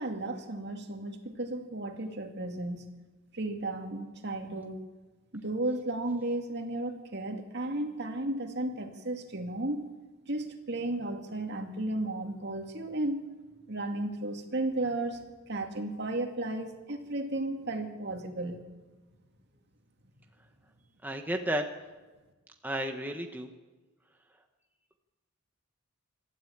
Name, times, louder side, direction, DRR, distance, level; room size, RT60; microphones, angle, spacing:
voice 1, 0.0-2.9 3.3-4.8 5.3-9.9 10.3-13.3 13.7-15.2 15.5-18.6, right 2 dB, 55° right, 4 dB, 2.3 m, -34 dB
voice 2, 21.0-21.7 22.6-23.5, right 1 dB, 10° right, 4 dB, 1.0 m, -32 dB
26.5 x 13.0 x 8.7 m, 1.2 s
head